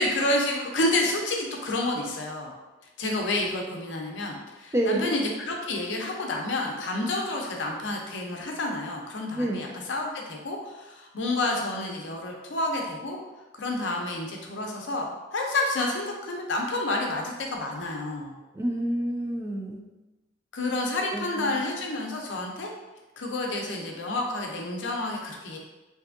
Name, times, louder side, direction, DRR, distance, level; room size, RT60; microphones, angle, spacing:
voice 1, 0.0-2.5 3.0-13.2 13.5-18.3 20.5-22.7 23.2-25.6, left 2 dB, 70° left, 1 dB, 0.5 m, -29 dB
voice 2, 4.7-5.1 9.3-9.6 18.5-19.8 21.1-21.6, right 1 dB, 15° right, 0 dB, 0.3 m, -28 dB
3.3 x 2.6 x 2.5 m, 1.1 s
head